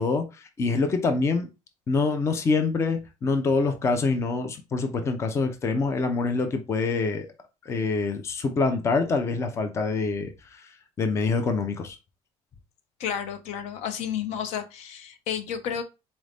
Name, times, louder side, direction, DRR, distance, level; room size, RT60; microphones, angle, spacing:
voice 1, 0.0-1.5 1.9-7.3 7.6-10.7 11.0-12.0, left 4 dB, 25° left, 0.5 m, -25 dB
voice 2, 13.0-15.8, left 8 dB, 70° left, 0.6 m, -31 dB
4.0 x 2.5 x 3.3 m
cardioid pair, 165°, 12 cm